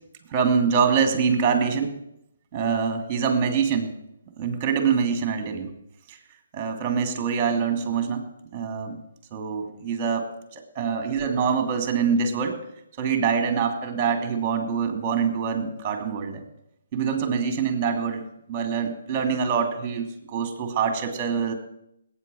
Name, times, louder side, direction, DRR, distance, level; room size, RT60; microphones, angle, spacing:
voice 1, 0.3-1.9 2.5-3.9 4.4-5.7 6.1-6.2 6.5-8.2 8.5-9.0 9.3-10.3 10.5-12.6 13.0-16.4 16.9-18.2 18.5-21.5, right 6 dB, 25° right, 6 dB, 2.8 m, -25 dB
19.5 x 9.4 x 7.7 m, 0.79 s
hypercardioid pair, 155°, 0 cm